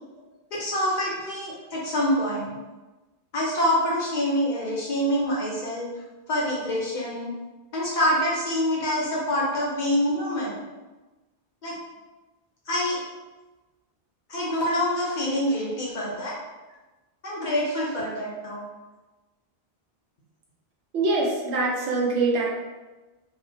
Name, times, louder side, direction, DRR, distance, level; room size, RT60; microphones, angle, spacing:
voice 1, 0.5-2.6 3.3-5.9 6.3-7.3 7.7-10.6 11.6-11.7 12.7-13.0 14.3-16.4 17.2-18.6, equal, 50° left, -5 dB, 0.7 m, -26 dB
voice 2, 20.9-22.5, right 3 dB, 90° right, -2 dB, 0.9 m, -24 dB
2.4 x 2.1 x 2.5 m, 1.2 s
omnidirectional pair, 1.1 m